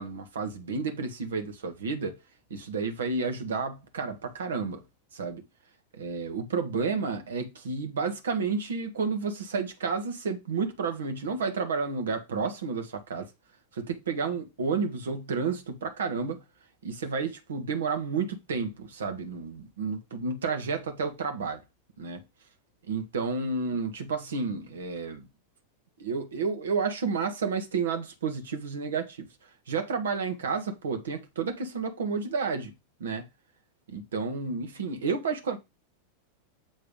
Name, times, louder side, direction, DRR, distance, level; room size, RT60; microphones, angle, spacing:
voice 1, 0.0-2.2 2.5-4.8 5.1-5.4 5.9-13.3 13.7-16.4 16.8-21.6 22.0-22.2 22.9-25.3 26.0-29.3 29.7-32.7 33.0-33.2 33.9-35.6, right 4 dB, 65° right, 1.3 m, -31 dB
7.4 x 3.4 x 5.3 m
figure-of-eight pair, 90°, 0 cm